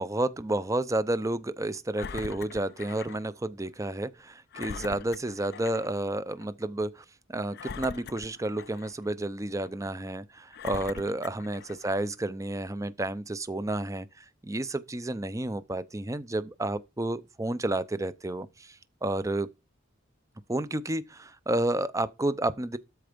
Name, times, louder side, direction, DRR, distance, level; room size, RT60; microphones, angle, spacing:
voice 1, 0.0-19.5 20.5-22.8, right 1 dB, 15° right, 0.6 m, -31 dB
Engine, 2.0-3.2 3.7-3.8 4.5-5.9 6.3-6.5 7.5-9.1 9.6-9.7 10.5-12.0 12.7-12.8, left 5 dB, 50° left, 0.5 m, -42 dB
13.0 x 4.5 x 5.2 m
head